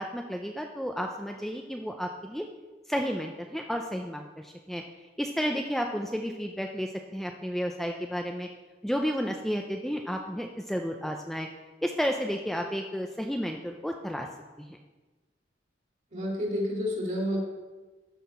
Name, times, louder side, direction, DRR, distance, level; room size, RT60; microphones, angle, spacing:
voice 1, 0.0-2.4 2.9-4.8 5.2-8.5 8.8-11.5 11.8-14.3 14.6-14.8, equal, ahead, 2 dB, 0.4 m, -32 dB
voice 2, 16.1-17.4, equal, 45° right, -2 dB, 2.5 m, -29 dB
12.5 x 5.7 x 4.3 m, 1.3 s
head